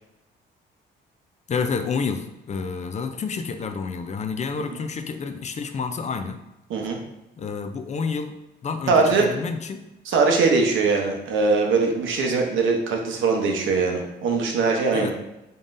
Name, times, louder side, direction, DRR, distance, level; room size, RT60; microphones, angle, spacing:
voice 1, 1.5-6.4 7.4-8.3 8.6-9.9 14.9-15.1, left 5 dB, 35° left, 8 dB, 0.4 m, -29 dB
voice 2, 8.9-9.3 10.1-15.1, right 4 dB, 80° right, 2 dB, 0.8 m, -21 dB
3.8 x 3.7 x 2.5 m, 0.95 s
cardioid pair, 90°, 20 cm